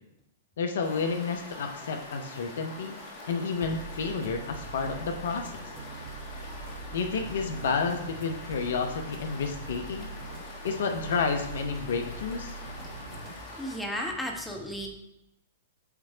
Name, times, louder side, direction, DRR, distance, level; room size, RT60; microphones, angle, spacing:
voice 1, 0.6-3.0 3.3-5.6 6.9-10.1 10.6-12.6, left 5 dB, 65° left, 5 dB, 0.8 m, -30 dB
sound 1, 0.8-13.8, left 2 dB, 25° left, 1.7 m, -44 dB
sound 2, 3.6-13.4, right 3 dB, 30° right, 1.6 m, -43 dB
voice 2, 13.6-14.9, equal, 5° left, 0 dB, 1.2 m, -33 dB
8.3 x 3.2 x 4.9 m, 0.87 s
figure-of-eight pair, 110°, 0 cm